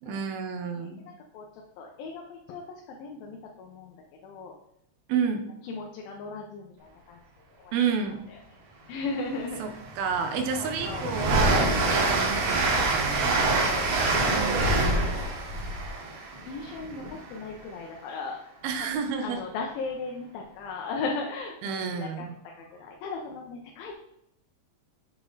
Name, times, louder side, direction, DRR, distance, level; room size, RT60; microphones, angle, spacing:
voice 1, 0.0-1.0 5.1-5.4 7.7-8.2 9.6-13.5 18.6-19.4 21.6-22.3, right 6 dB, 85° right, 6 dB, 2.7 m, -30 dB
voice 2, 0.8-4.5 5.6-7.2 7.6-7.7 8.3-8.4 8.9-9.6 10.6-11.0 11.6-11.9 13.6-15.1 15.5-15.9 16.5-18.6 18.9-22.3 22.6-23.9, left 4 dB, 80° left, 1 dB, 2.6 m, -37 dB
Train, 9.1-9.2 9.7-17.4, right 2 dB, 65° right, 2.9 m, -26 dB
7.8 x 5.0 x 4.0 m, 0.80 s
omnidirectional pair, 4.1 m